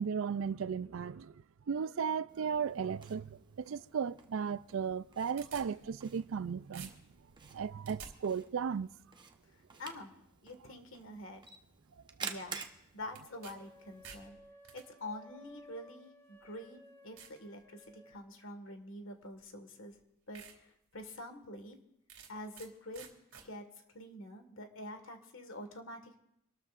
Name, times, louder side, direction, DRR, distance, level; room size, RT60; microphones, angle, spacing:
voice 1, 0.0-1.3 1.7-6.9 7.5-8.9, right 6 dB, 70° right, 0.4 m, -35 dB
Camera, 2.3-14.3, right 5 dB, 20° right, 1.0 m, -51 dB
sound 1, 5.0-6.4 6.7-8.1 13.1-13.5 13.9-14.8 15.7-15.8 16.4-16.5 17.2-17.4 17.9-18.3 19.4-19.5 19.9-20.0 20.3-20.6 21.0-21.1 22.1-22.7 22.9-23.5, right 7 dB, 90° right, 2.5 m, -51 dB
voice 2, 9.5-10.1 10.4-11.5 12.2-12.6 12.9-14.4 14.7-20.0 20.3-21.8 22.3-23.1 23.4-23.7 23.9-26.2, left 1 dB, 65° left, 1.7 m, -46 dB
sound 2, 13.3-18.3, left 1 dB, 15° left, 3.0 m, -58 dB
25.5 x 13.0 x 2.5 m
head